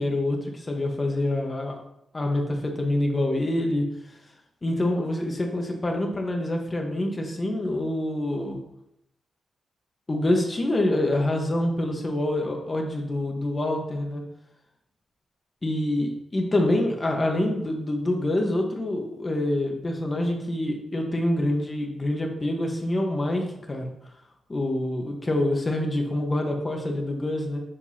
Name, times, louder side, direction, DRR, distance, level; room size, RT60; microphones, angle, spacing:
voice 1, 0.0-1.8 2.1-3.9 4.6-8.6 10.1-14.2 15.6-23.9 24.5-27.6, left 1 dB, 25° left, 2 dB, 1.2 m, -26 dB
7.5 x 6.4 x 2.8 m, 0.79 s
wide cardioid pair, 130°, 0 cm